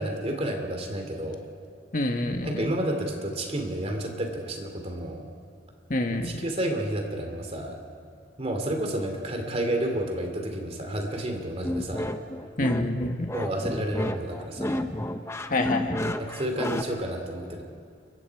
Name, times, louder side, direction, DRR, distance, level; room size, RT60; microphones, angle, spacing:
voice 1, 0.0-1.4 2.4-5.3 6.2-7.8 8.4-12.1 13.3-14.7 16.2-17.6, right 1 dB, 35° right, 3 dB, 3.0 m, -30 dB
voice 2, 1.9-2.6 5.9-6.3 12.6-13.3 15.5-16.2, left 1 dB, 45° left, 4 dB, 1.7 m, -27 dB
sound 1, 11.6-16.8, left 1 dB, 15° left, 0.8 m, -31 dB
29.0 x 24.0 x 4.9 m, 2.3 s
head